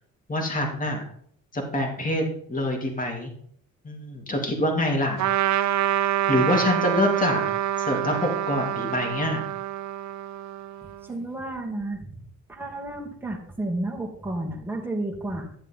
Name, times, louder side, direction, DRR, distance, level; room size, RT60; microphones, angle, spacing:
voice 1, 0.3-1.0 1.5-2.2 2.5-3.3 3.8-5.2 6.3-7.4 7.8-9.4, left 1 dB, 25° left, 1 dB, 3.3 m, -25 dB
Trumpet, 5.2-11.1, right 11 dB, 70° right, 0.7 m, -26 dB
voice 2, 11.0-12.2 12.5-15.5, right 2 dB, 5° right, -1 dB, 2.8 m, -32 dB
13.0 x 7.2 x 3.9 m, 0.63 s
cardioid pair, 90°, 30 cm